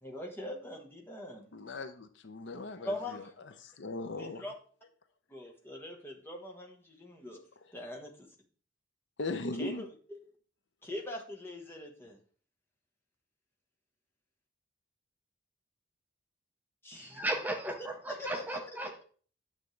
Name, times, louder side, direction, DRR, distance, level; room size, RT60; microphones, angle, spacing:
voice 1, 0.0-1.5 2.8-3.3 4.2-4.5 5.3-7.4 7.7-8.3 9.6-10.2 10.8-12.2 16.8-17.3 18.1-18.9, left 1 dB, 10° left, 1.2 m, -42 dB
voice 2, 1.5-3.2 3.6-4.4 9.2-9.8, left 2 dB, 60° left, 0.6 m, -38 dB
voice 3, 16.9-19.0, right 1 dB, 10° right, 0.5 m, -36 dB
9.1 x 6.3 x 3.2 m
head